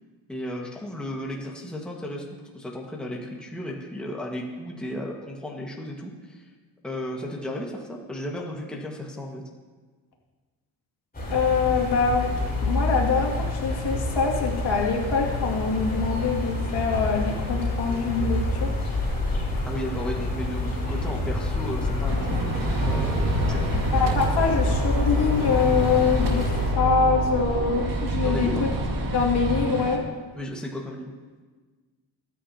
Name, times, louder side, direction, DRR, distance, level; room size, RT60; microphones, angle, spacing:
voice 1, 0.3-6.4 6.8-9.4 19.7-23.6 28.2-28.7 30.3-31.1, left 1 dB, ahead, -2 dB, 1.6 m, -34 dB
sound 1, 11.1-26.7, left 2 dB, 20° left, 3.9 m, -27 dB
voice 2, 11.3-18.7 23.9-28.7 29.1-30.0, left 5 dB, 65° left, -2 dB, 2.4 m, -24 dB
Gunshot gunfire, 22.1-30.0, right 3 dB, 50° right, 1.9 m, -33 dB
sound 2, 22.3-29.6, right 3 dB, 70° right, 3.6 m, -28 dB
19.5 x 9.2 x 2.9 m, 1.4 s
cardioid pair, 110°, 43 cm